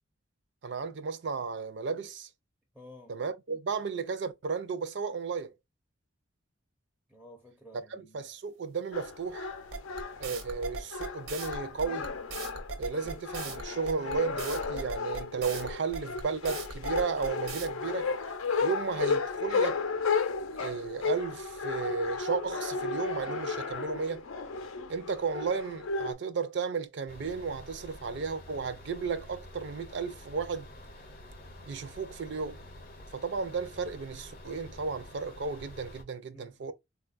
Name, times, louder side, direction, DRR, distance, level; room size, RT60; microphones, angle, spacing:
voice 1, 0.6-2.3 3.1-5.5 7.9-9.5 10.2-12.1 12.8-18.1 18.6-19.8 20.6-24.2 24.9-30.7 31.7-32.6 33.1-36.7, right 5 dB, 60° right, 0.4 m, -34 dB
voice 2, 2.7-3.2 7.1-8.2 12.8-13.2 36.3-36.7, left 1 dB, 5° left, 0.4 m, -53 dB
sound 1, 8.9-26.1, left 4 dB, 90° left, 0.5 m, -34 dB
sound 2, 9.7-17.7, right 4 dB, 85° right, 0.8 m, -39 dB
sound 3, 27.1-36.0, left 1 dB, 45° left, 0.6 m, -48 dB
3.8 x 2.3 x 2.4 m
head